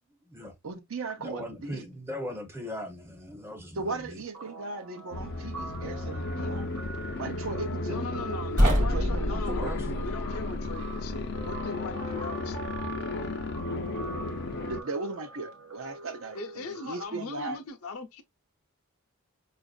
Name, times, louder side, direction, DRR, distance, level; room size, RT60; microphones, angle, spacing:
voice 1, 0.1-0.5 1.2-4.2 9.4-9.9, equal, 10° right, 0.7 m, -39 dB
voice 2, 0.6-1.8 3.8-6.7 7.2-8.4 8.8-9.8 14.7-17.6, right 3 dB, 70° right, 0.7 m, -37 dB
Guitar, 4.3-17.1, right 3 dB, 90° right, 1.0 m, -44 dB
sound 1, 5.1-14.8, left 3 dB, 50° left, 0.4 m, -35 dB
voice 3, 7.8-12.7 16.3-18.2, left 4 dB, 80° left, 0.7 m, -39 dB
sound 2, 8.6-11.6, equal, 40° right, 1.2 m, -27 dB
5.0 x 2.5 x 2.3 m
head